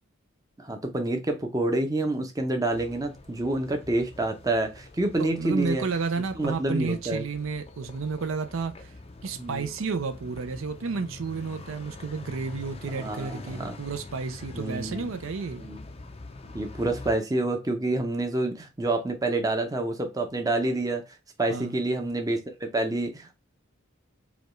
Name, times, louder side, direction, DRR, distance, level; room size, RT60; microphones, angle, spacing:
voice 1, 0.6-5.8 6.4-7.3 9.4-9.7 12.9-13.8 14.5-15.1 15.6-15.8 16.5-21.0 21.4-23.4, right 2 dB, 15° right, 0.6 m, -28 dB
sound 1, 2.7-17.2, left 2 dB, 30° left, 0.4 m, -45 dB
voice 2, 5.2-8.9 9.2-15.6 21.5-21.8, right 4 dB, 70° right, 0.5 m, -31 dB
5.1 x 2.3 x 3.0 m
head